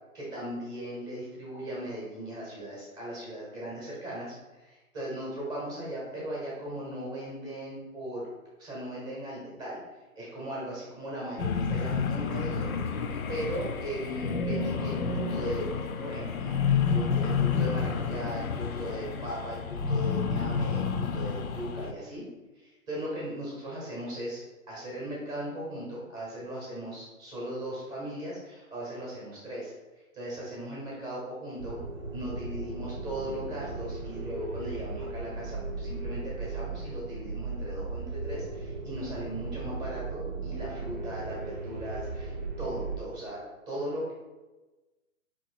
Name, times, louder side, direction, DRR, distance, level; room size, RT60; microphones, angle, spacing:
voice 1, 0.1-8.3 8.6-9.8 10.2-13.0 13.3-15.7 16.0-22.2 22.6-24.4 24.7-29.7 30.1-31.8 32.1-42.3 42.6-44.1, right 1 dB, 10° right, -5 dB, 0.8 m, -38 dB
sound 1, 11.4-21.9, left 5 dB, 80° left, 0.6 m, -30 dB
sound 2, 31.6-43.0, right 3 dB, 35° right, 0.5 m, -37 dB
4.1 x 3.0 x 4.4 m, 1.1 s
hypercardioid pair, 155°, 42 cm